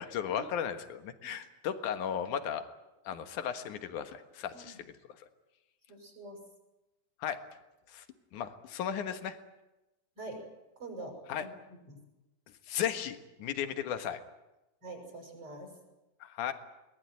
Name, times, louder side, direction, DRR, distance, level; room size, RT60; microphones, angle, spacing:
voice 1, 0.0-2.7 3.0-4.9 5.2-5.3 7.2-7.4 7.9-8.1 8.3-9.4 11.3-11.5 12.7-14.2 16.2-16.5, left 9 dB, 65° left, 9 dB, 2.8 m, -35 dB
voice 2, 5.9-6.4 10.2-10.4 10.8-11.5 11.9-12.0 14.8-15.7, right 2 dB, 30° right, 1 dB, 7.2 m, -45 dB
23.0 x 19.5 x 9.5 m, 1.0 s
omnidirectional pair, 4.0 m